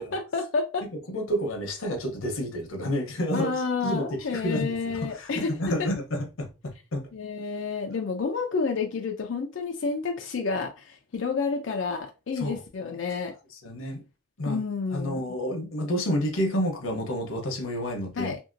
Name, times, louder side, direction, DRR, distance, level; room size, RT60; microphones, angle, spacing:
voice 1, 0.0-0.9 3.3-5.5 5.8-5.9 7.1-13.3 14.5-15.2 18.2-18.4, left 4 dB, 65° left, 0.4 m, -30 dB
voice 2, 0.9-3.5 3.8-7.1 12.4-12.6 13.6-14.0 14.4-14.6 14.9-18.3, equal, 85° left, 0.8 m, -30 dB
2.8 x 2.7 x 2.5 m
head